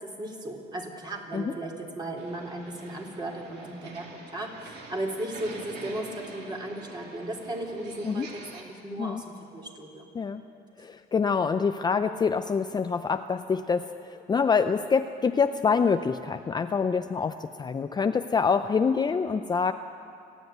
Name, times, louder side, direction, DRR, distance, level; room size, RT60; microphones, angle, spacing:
voice 1, 0.0-9.2 9.5-10.1, right 1 dB, 25° right, 0 dB, 3.6 m, -36 dB
sound 1, 2.2-8.6, right 3 dB, 75° right, 3.0 m, -46 dB
voice 2, 10.8-19.7, left 5 dB, 25° left, 9 dB, 0.5 m, -26 dB
29.5 x 10.0 x 9.3 m, 2.5 s
cardioid pair, 110°, 17 cm